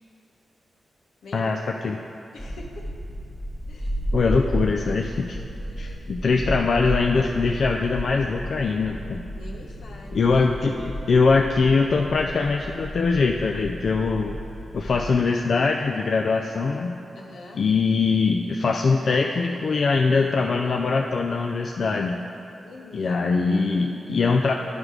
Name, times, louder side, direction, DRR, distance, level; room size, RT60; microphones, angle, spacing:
voice 1, 1.2-1.6 2.3-2.8 3.7-4.0 5.5-6.1 9.3-10.3 17.1-17.6 22.6-23.3, left 3 dB, 90° left, -1 dB, 1.1 m, -44 dB
sound 1, 2.4-15.2, equal, 30° left, 1.6 m, -33 dB
voice 2, 4.1-5.4 5.8-9.2 10.1-14.4 14.7-16.9 17.5-22.2 22.9-24.5, left 4 dB, 65° left, 2 dB, 0.4 m, -22 dB
10.5 x 5.0 x 4.8 m, 2.8 s
cardioid pair, 75°, 0 cm